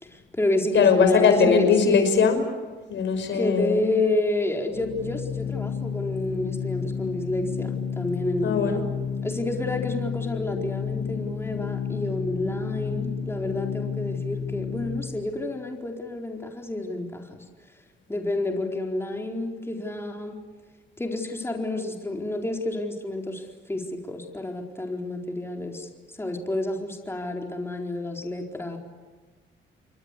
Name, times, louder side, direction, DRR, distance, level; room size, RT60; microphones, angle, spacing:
voice 1, 0.0-2.1 3.3-8.8 9.2-17.4 18.1-20.4 21.0-28.8, left 2 dB, 10° left, 2 dB, 4.4 m, -29 dB
voice 2, 0.7-2.4 2.9-3.9 8.4-8.8, left 6 dB, 65° left, 8 dB, 5.6 m, -20 dB
Organ, 4.6-15.3, left 7 dB, 85° left, 7.4 m, -31 dB
29.0 x 23.0 x 8.4 m, 1.3 s
cardioid pair, 90°, 20 cm